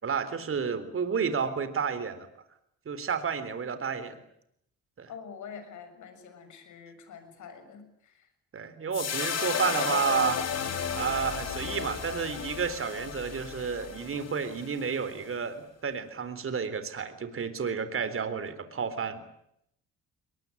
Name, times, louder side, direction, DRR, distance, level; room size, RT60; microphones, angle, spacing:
voice 1, 0.0-2.3 2.9-4.2 5.0-5.1 8.5-19.2, right 6 dB, 45° right, 11 dB, 3.8 m, -31 dB
voice 2, 5.1-8.3, left 6 dB, 75° left, 9 dB, 6.8 m, -46 dB
sound 1, 8.9-15.3, left 7 dB, 55° left, 3.7 m, -33 dB
22.5 x 21.5 x 9.8 m, 0.75 s
cardioid pair, 90°, 30 cm